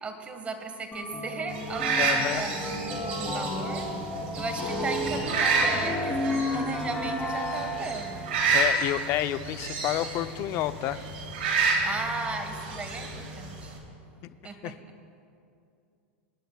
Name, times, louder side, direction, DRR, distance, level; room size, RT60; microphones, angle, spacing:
voice 1, 0.0-2.5 2.8-3.9 4.3-8.3 11.8-13.8 14.4-14.8, right 3 dB, 20° right, 6 dB, 1.5 m, -36 dB
sound 1, 0.9-8.2, left 1 dB, 10° left, 3.0 m, -32 dB
sound 2, 1.5-13.8, right 4 dB, 75° right, 2.8 m, -30 dB
voice 2, 2.0-2.4 8.5-11.0 14.6-14.7, left 14 dB, 45° left, 12 dB, 0.5 m, -29 dB
25.5 x 10.0 x 2.3 m, 2.5 s
hypercardioid pair, 120°, 7 cm